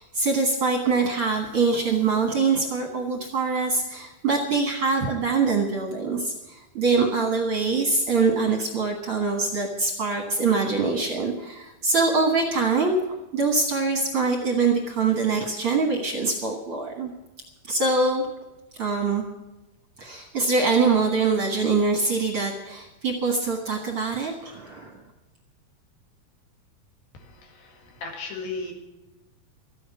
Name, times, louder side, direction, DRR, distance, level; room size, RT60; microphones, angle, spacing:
voice 1, 0.0-12.9 13.3-17.1 17.6-18.2 18.8-19.2 20.0-25.0, right 4 dB, 55° right, 1 dB, 1.6 m, -24 dB
voice 2, 27.1-28.7, left 3 dB, 65° left, 3 dB, 3.8 m, -36 dB
14.0 x 9.2 x 8.3 m, 1.1 s
omnidirectional pair, 4.5 m